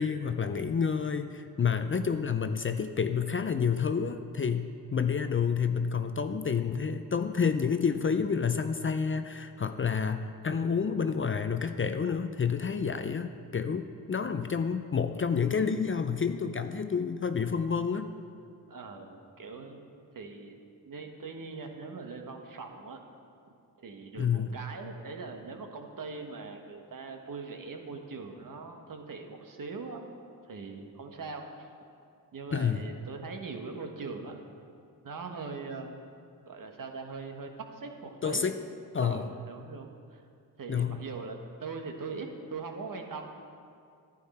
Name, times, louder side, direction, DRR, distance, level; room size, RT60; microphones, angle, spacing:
voice 1, 0.0-18.1 24.2-24.5 32.5-32.8 38.2-38.6 38.9-39.3 40.7-41.0, left 6 dB, 30° left, 9 dB, 0.5 m, -29 dB
voice 2, 18.7-19.8 20.1-20.5 20.8-23.0 23.8-30.0 30.4-31.7 32.3-34.4 35.0-35.9 36.5-38.5 39.0-40.2 40.6-43.3, right 4 dB, 55° right, 4 dB, 1.3 m, -41 dB
11.0 x 9.4 x 4.2 m, 2.3 s
cardioid pair, 55°, 39 cm